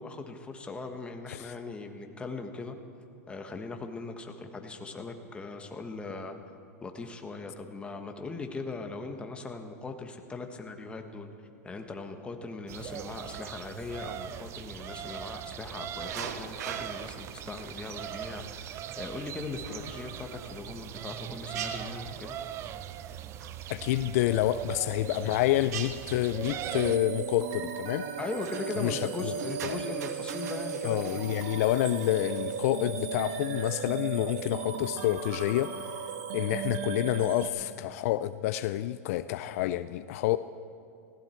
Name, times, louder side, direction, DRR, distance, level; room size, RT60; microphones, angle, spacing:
voice 1, 0.0-2.8 3.3-6.4 6.8-11.3 11.6-22.4 28.2-31.2, left 3 dB, 10° left, 5 dB, 1.3 m, -39 dB
sound 1, 12.7-27.0, right 10 dB, 30° right, 0.5 m, -40 dB
sound 2, 16.0-33.8, right 8 dB, 75° right, 1.3 m, -46 dB
voice 2, 23.7-28.1 28.8-29.3 29.6-29.8 30.8-35.9 36.3-40.4, left 14 dB, 60° left, 13 dB, 0.4 m, -28 dB
sound 3, 26.6-37.5, right 6 dB, 50° right, 1.6 m, -36 dB
19.5 x 16.0 x 4.5 m, 2.5 s
supercardioid pair, 130°, 9 cm